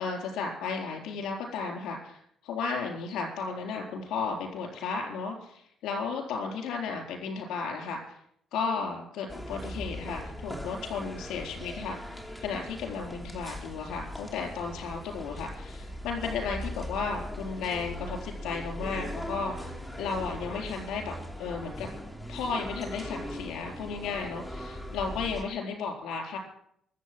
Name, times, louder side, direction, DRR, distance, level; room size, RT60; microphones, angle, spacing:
voice 1, 0.0-8.0 8.5-12.0 12.4-21.1 21.4-21.9 22.3-26.4, left 5 dB, 85° left, 1 dB, 4.0 m, -34 dB
sound 1, 9.3-25.4, left 1 dB, 5° left, 2.7 m, -39 dB
23.5 x 8.2 x 6.2 m, 0.69 s
cardioid pair, 90°, 0 cm